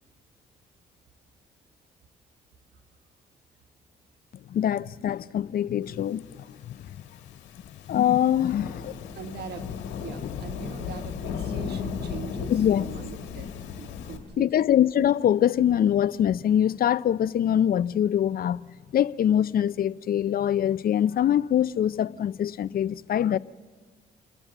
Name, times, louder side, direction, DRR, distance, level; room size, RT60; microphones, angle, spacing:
voice 1, 4.5-6.8 7.9-8.9 12.5-12.9 14.4-18.6 18.9-23.4, left 10 dB, 55° left, 0.5 m, -23 dB
Thunderstorm / Rain, 6.5-14.2, left 7 dB, 80° left, 1.8 m, -36 dB
voice 2, 9.1-13.5 13.8-14.7, right 7 dB, 65° right, 1.6 m, -42 dB
28.0 x 11.5 x 8.0 m
supercardioid pair, 60°, 18 cm